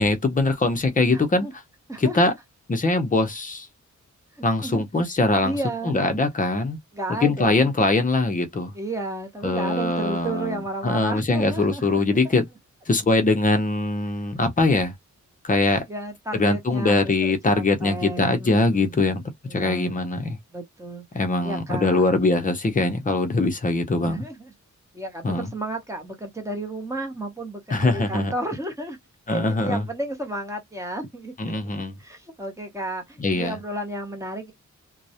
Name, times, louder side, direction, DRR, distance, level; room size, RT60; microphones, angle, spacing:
voice 1, 0.0-1.5 2.0-2.3 2.7-3.7 4.4-5.6 5.8-6.8 7.2-8.7 9.4-12.4 12.9-14.9 15.4-15.9 16.3-19.2 19.5-20.4 21.1-24.2 25.2-25.5 27.7-28.3 29.3-29.9 31.4-31.9 33.2-33.6, left 2 dB, 25° left, 0.6 m, -22 dB
voice 2, 1.1-1.5 1.9-2.4 4.3-4.8 5.4-6.1 6.9-7.7 8.7-12.0 15.9-19.1 19.5-19.9 20.5-21.1 21.4-22.0 24.0-24.5 24.9-29.0 29.3-31.7 32.0-34.5, right 1 dB, 10° right, 0.7 m, -33 dB
2.3 x 2.0 x 2.7 m
wide cardioid pair, 155°, 30 cm